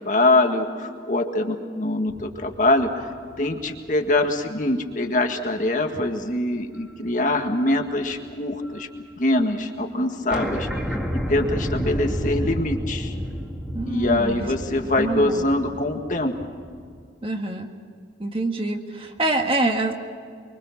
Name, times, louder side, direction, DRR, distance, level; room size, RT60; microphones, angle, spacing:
voice 1, 0.0-2.9 3.4-8.9 9.2-10.7 11.1-13.1 13.9-16.3, left 2 dB, 45° left, 4 dB, 1.8 m, -23 dB
sound 1, 2.1-4.7 5.2-5.3 6.8-7.1 7.4-8.8 9.1-9.2 9.4-9.5 9.8-9.9 10.3-17.0, equal, 5° right, 1.9 m, -31 dB
voice 2, 13.7-14.5 14.9-15.4 17.2-17.7 18.2-19.9, right 2 dB, 30° right, 3 dB, 1.7 m, -25 dB
24.5 x 24.5 x 6.0 m, 2.2 s
head